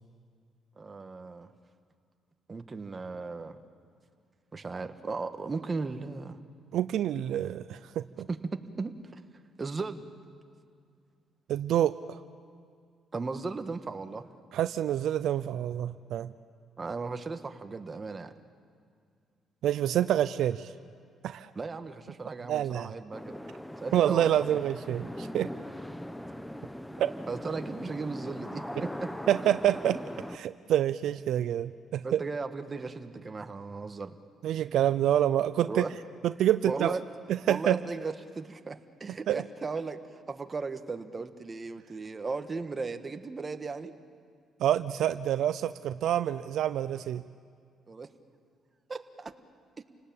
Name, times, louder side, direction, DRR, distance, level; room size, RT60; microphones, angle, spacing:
voice 1, 0.8-1.5 2.5-3.6 4.5-6.4 8.3-8.4 8.8-9.2 9.6-10.1 13.1-14.3 16.8-18.3 21.5-23.4 23.8-24.3 27.3-29.1 32.0-34.2 35.7-35.9 36.4-37.0 37.5-43.9 47.9-48.1 48.9-49.3 49.8-49.9, right 4 dB, 30° right, 7 dB, 1.5 m, -36 dB
voice 2, 6.7-8.3 11.5-12.2 14.5-16.3 19.6-20.7 21.2-21.5 22.5-22.9 23.9-25.5 27.0-27.1 29.3-30.0 30.3-32.2 34.4-35.8 36.2-37.0 37.3-37.8 39.3-39.4 44.6-47.2, right 11 dB, 80° right, 12 dB, 0.5 m, -27 dB
sound 1, 23.1-30.4, left 1 dB, 5° left, 1.0 m, -40 dB
29.5 x 19.0 x 8.8 m, 2.2 s
cardioid pair, 90°, 0 cm